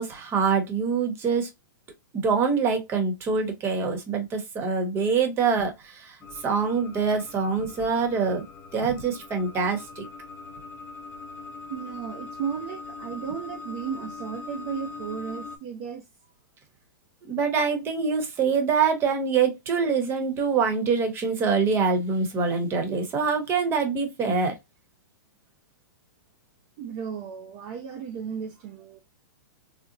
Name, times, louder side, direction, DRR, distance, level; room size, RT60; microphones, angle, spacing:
voice 1, 0.0-1.5 2.2-6.2 6.4-8.4 8.7-10.1 17.3-24.6, right 5 dB, 20° right, 1.0 m, -25 dB
sound 1, 6.2-15.6, left 4 dB, 15° left, 0.7 m, -42 dB
voice 2, 11.7-16.1 26.8-29.0, right 7 dB, 35° right, 0.5 m, -34 dB
3.9 x 2.1 x 2.8 m
hypercardioid pair, 145°, 11 cm